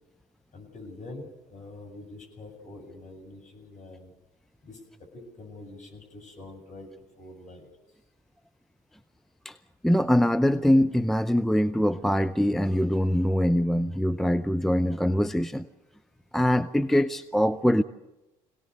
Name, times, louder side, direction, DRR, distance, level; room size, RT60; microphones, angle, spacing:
voice 1, 0.5-4.1 4.6-7.7, left 2 dB, 45° left, 3 dB, 7.9 m, -45 dB
voice 2, 9.8-15.7 16.3-17.8, equal, ahead, 11 dB, 0.7 m, -23 dB
25.5 x 18.0 x 6.7 m, 0.99 s
figure-of-eight pair, 55°, 18 cm